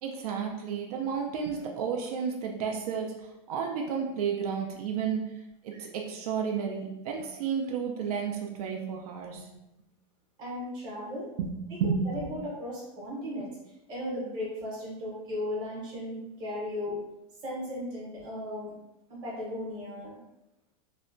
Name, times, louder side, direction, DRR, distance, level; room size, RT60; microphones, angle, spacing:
voice 1, 0.0-5.3 5.6-9.5 11.4-12.3, right 6 dB, 75° right, 1 dB, 0.4 m, -32 dB
voice 2, 10.4-11.3 12.1-13.5 13.9-17.0 17.4-18.7 19.1-20.1, left 1 dB, 25° right, -5 dB, 0.8 m, -36 dB
2.7 x 2.1 x 2.5 m, 0.91 s
supercardioid pair, 175°, 19 cm